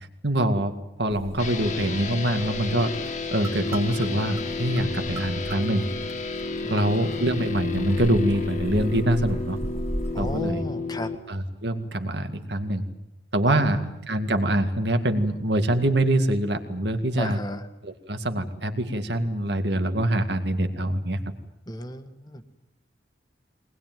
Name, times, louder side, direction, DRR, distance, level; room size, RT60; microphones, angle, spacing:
voice 1, 0.2-2.9 3.3-5.9 6.7-9.6 10.2-10.6 11.3-12.8 13.3-17.4 17.8-21.2, right 1 dB, 65° right, 7 dB, 2.1 m, -24 dB
sound 1, 1.1-10.4, right 1 dB, 15° right, 2.4 m, -38 dB
sound 2, 1.4-11.1, left 3 dB, 40° left, 2.1 m, -32 dB
voice 2, 10.1-11.1 13.5-13.6 17.2-17.6 21.7-22.4, left 1 dB, 20° left, 8 dB, 1.7 m, -34 dB
23.0 x 20.0 x 9.3 m, 0.91 s
head